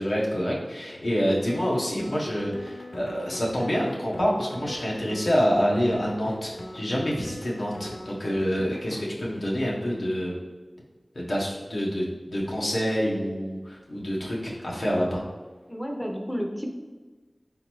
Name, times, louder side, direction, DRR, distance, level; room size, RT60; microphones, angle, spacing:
voice 1, 0.0-10.3 11.1-15.2, equal, 80° left, -4 dB, 1.0 m, -27 dB
sound 1, 1.5-9.1, left 1 dB, 60° left, 0.5 m, -40 dB
voice 2, 15.7-16.7, equal, 5° left, 2 dB, 0.6 m, -31 dB
4.0 x 3.9 x 3.0 m, 1.3 s
wide cardioid pair, 55°, 0 cm